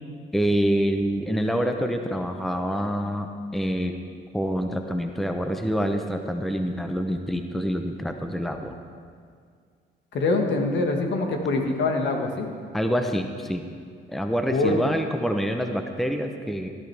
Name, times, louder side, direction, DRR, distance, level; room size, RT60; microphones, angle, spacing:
voice 1, 0.3-3.9 4.3-8.8 12.7-13.7 14.1-16.7, equal, ahead, 5 dB, 0.8 m, -26 dB
voice 2, 10.1-12.5 14.5-14.8, left 3 dB, 65° left, 2 dB, 1.6 m, -24 dB
15.0 x 11.0 x 3.4 m, 2.1 s
cardioid pair, 90°, 20 cm